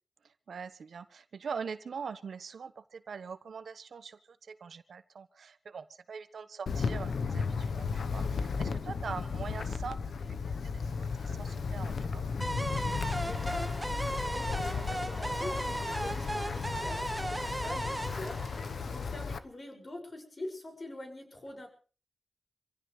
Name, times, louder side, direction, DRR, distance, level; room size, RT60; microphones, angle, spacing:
voice 1, 0.5-10.1 10.5-12.2, right 6 dB, 75° right, 11 dB, 1.2 m, -43 dB
Wind, 6.7-19.4, left 5 dB, 75° left, 1.0 m, -34 dB
sound 1, 12.4-19.4, right 1 dB, 10° right, 1.4 m, -36 dB
voice 2, 13.3-21.7, left 1 dB, 35° left, 3 dB, 6.3 m, -44 dB
26.5 x 16.0 x 3.3 m, 0.40 s
wide cardioid pair, 125°, 0 cm